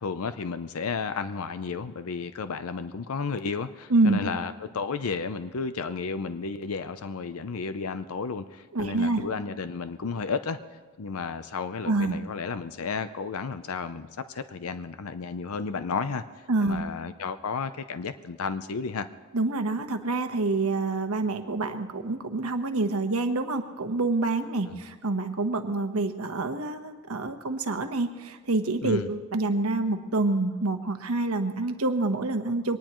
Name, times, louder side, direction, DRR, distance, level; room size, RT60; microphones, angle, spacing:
voice 1, 0.0-10.6 11.0-16.2 16.6-19.1 24.7-24.8 28.8-29.1, left 5 dB, 80° left, 11 dB, 0.6 m, -32 dB
voice 2, 8.7-9.2 11.8-12.2 16.5-16.8 19.3-32.8, right 2 dB, 90° right, 7 dB, 1.2 m, -27 dB
23.0 x 19.0 x 3.1 m, 1.5 s
head